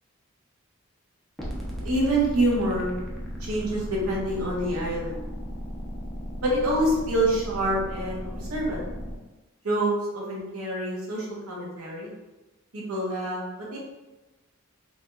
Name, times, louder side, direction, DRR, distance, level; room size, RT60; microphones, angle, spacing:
sound 1, 1.4-9.1, equal, ahead, 0.4 m, -36 dB
voice 1, 1.8-2.9 3.4-5.3 6.4-8.8 9.6-12.1 12.7-13.8, right 1 dB, 85° right, -3 dB, 0.9 m, -26 dB
3.4 x 2.2 x 2.7 m, 1.1 s
head